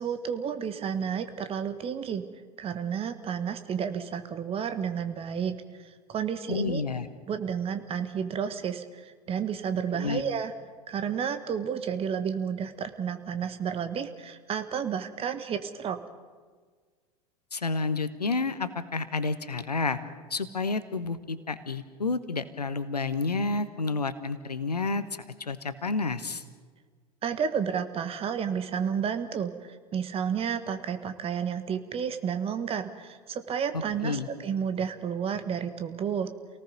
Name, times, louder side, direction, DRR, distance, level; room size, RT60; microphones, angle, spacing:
voice 1, 0.0-2.2 2.6-5.6 6.1-6.8 7.3-10.5 10.9-16.0 27.2-36.3, right 7 dB, 30° right, 9 dB, 1.6 m, -31 dB
voice 2, 6.5-7.1 9.9-10.2 17.5-20.0 20.3-26.4 33.7-34.3, left 3 dB, 80° left, 13 dB, 1.1 m, -30 dB
29.0 x 18.5 x 5.3 m, 1.5 s
figure-of-eight pair, 80°, 20 cm